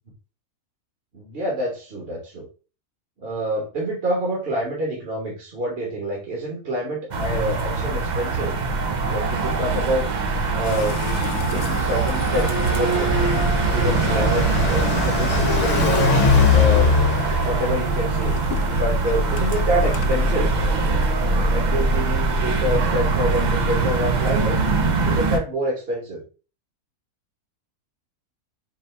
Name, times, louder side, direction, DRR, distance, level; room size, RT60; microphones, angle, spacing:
voice 1, 1.1-2.5 3.2-8.5 9.0-11.0 11.5-13.1 13.7-17.0 17.4-18.4 18.7-20.6 21.5-24.6 25.0-26.2, right 1 dB, 40° right, -2 dB, 1.3 m, -27 dB
sound 1, 7.1-25.4, right 3 dB, 55° right, 0.4 m, -22 dB
sound 2, 10.6-20.3, left 7 dB, 85° left, 1.1 m, -34 dB
Car passing by, 12.7-18.1, left 5 dB, 55° left, 1.4 m, -21 dB
4.6 x 2.6 x 3.3 m, 0.35 s
omnidirectional pair, 1.6 m